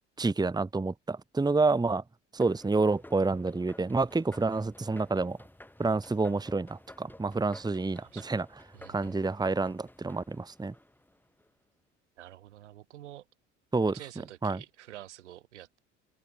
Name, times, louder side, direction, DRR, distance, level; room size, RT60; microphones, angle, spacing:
voice 1, 0.2-2.0 2.3-5.4 5.8-8.5 8.9-10.7 13.7-13.9 14.4-14.6, right 3 dB, 10° right, 1.3 m, -28 dB
sound 1, 2.4-11.5, left 1 dB, 5° left, 5.5 m, -53 dB
voice 2, 8.7-9.2 12.2-13.3 13.9-15.8, right 13 dB, 80° right, 6.9 m, -48 dB
open air
hypercardioid pair, 65°, 35 cm